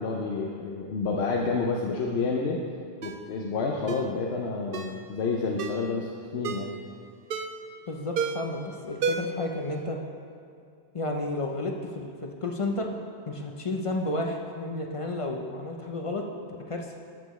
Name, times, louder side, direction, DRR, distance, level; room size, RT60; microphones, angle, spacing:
voice 1, 0.0-2.6 3.0-6.7, left 4 dB, 70° left, 0 dB, 0.9 m, -29 dB
Ringtone, 3.0-3.2 3.9-4.1 4.7-5.0 5.6-5.9 6.4-6.7 7.3-7.7 8.2-8.6 9.0-9.5 9.8-9.9, right 5 dB, 60° right, 0.7 m, -31 dB
voice 2, 7.9-10.0 10.9-13.0 13.3-17.0, left 2 dB, 35° left, 2 dB, 0.6 m, -32 dB
13.5 x 6.8 x 3.1 m, 2.3 s
omnidirectional pair, 1.2 m